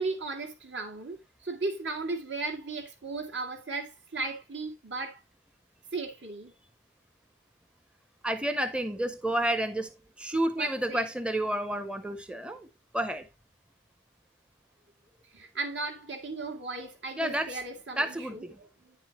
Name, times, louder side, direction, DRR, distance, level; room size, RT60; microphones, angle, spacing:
voice 1, 0.0-5.2 5.9-6.5 10.6-11.1 15.3-19.0, right 3 dB, 75° right, 2.4 m, -36 dB
voice 2, 8.2-12.7 12.9-13.3 17.2-17.6 18.0-18.6, right 1 dB, 5° right, 0.6 m, -30 dB
9.7 x 7.4 x 3.0 m
head